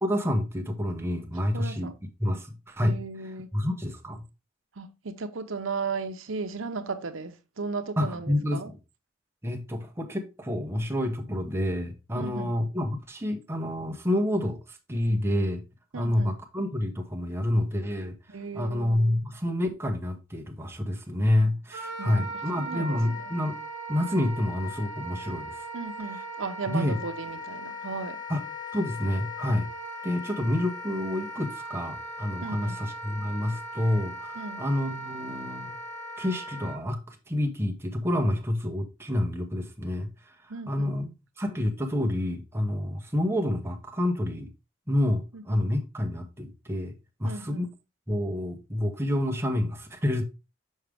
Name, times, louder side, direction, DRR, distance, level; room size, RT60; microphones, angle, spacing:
voice 1, 0.0-1.9 2.2-2.9 3.5-4.2 8.0-8.6 9.4-15.6 15.9-18.1 18.5-23.6 23.9-25.6 26.7-26.9 28.3-28.4 28.7-29.7 30.0-35.8 36.2-41.1 41.4-44.5 44.9-46.9 47.2-47.7 48.1-50.2, left 1 dB, 10° right, 0.8 m, -28 dB
voice 2, 1.5-1.9 2.8-3.5 4.8-8.7 12.1-12.5 15.9-16.3 18.3-19.2 22.0-22.3 22.6-23.3 25.7-28.2 32.4-32.8 34.3-34.6 40.5-41.1 45.3-45.6 47.2-47.7, right 4 dB, 75° right, 0.8 m, -36 dB
Wind instrument woodwind instrument, 21.7-36.8, equal, 85° left, 4.2 m, -38 dB
6.4 x 4.9 x 3.4 m
head